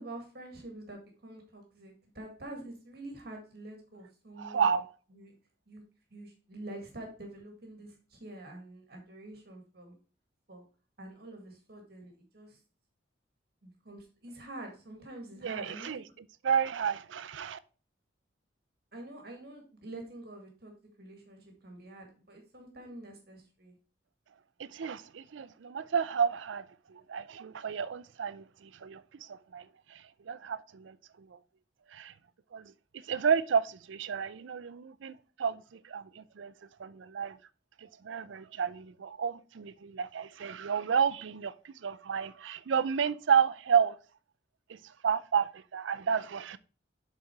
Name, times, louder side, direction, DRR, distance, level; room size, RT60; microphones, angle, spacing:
voice 1, 0.0-4.7 5.1-5.4 5.7-5.8 6.1-9.9 10.5-10.6 11.0-12.6 13.6-16.0 18.9-23.8, right 1 dB, 55° right, 1.8 m, -47 dB
voice 2, 4.4-4.9 15.4-16.0 16.4-17.6 24.6-29.0 29.3-31.4 31.9-32.1 32.5-36.5 36.8-37.4 37.8-44.0 44.7-46.6, right 7 dB, 85° right, 0.5 m, -31 dB
7.5 x 4.2 x 4.5 m
head